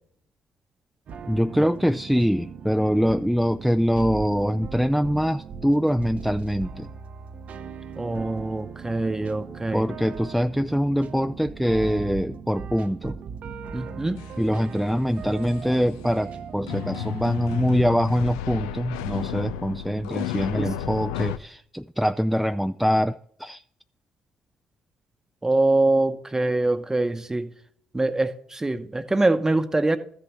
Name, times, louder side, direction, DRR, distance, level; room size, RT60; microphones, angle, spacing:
sound 1, 1.1-17.9, right 6 dB, 60° right, 0.7 m, -39 dB
voice 1, 1.3-6.9 9.7-13.2 14.4-23.6, equal, ahead, 0.4 m, -24 dB
voice 2, 8.0-9.8 13.7-14.2 20.6-20.7 25.4-27.5 27.9-30.0, right 2 dB, 20° right, 0.9 m, -24 dB
sound 2, 14.2-14.3 15.4-15.8 16.7-21.4, left 11 dB, 85° left, 0.4 m, -32 dB
13.5 x 6.7 x 3.1 m
hypercardioid pair, 50°, 3 cm